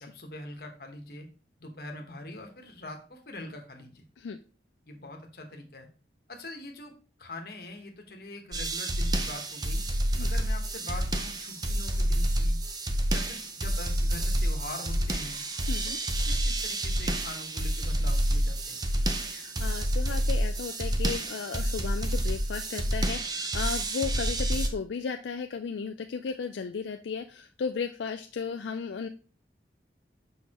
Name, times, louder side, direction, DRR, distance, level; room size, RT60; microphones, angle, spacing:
voice 1, 0.0-1.3 1.6-4.1 4.9-5.9 6.3-9.8 10.2-12.6 13.1-15.4 15.9-16.0 16.2-18.9, left 2 dB, 55° left, 3 dB, 1.2 m, -43 dB
sound 1, 8.5-24.7, right 1 dB, 20° right, 0.6 m, -28 dB
voice 2, 15.7-16.0 19.3-29.1, left 5 dB, 80° left, 6 dB, 0.4 m, -35 dB
6.4 x 5.6 x 2.9 m, 0.37 s
head